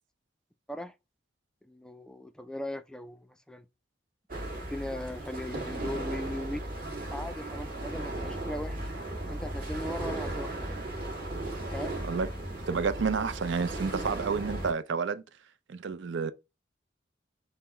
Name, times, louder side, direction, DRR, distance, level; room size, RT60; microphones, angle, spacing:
voice 1, 1.6-3.7 4.6-6.6 7.1-8.9 9.3-10.7 11.7-12.0, left 1 dB, 5° left, 0.3 m, -39 dB
sound 1, 4.3-14.7, right 1 dB, 50° right, 1.6 m, -36 dB
voice 2, 12.7-15.2 15.7-16.3, right 5 dB, 80° right, 0.5 m, -30 dB
5.7 x 2.1 x 4.3 m
head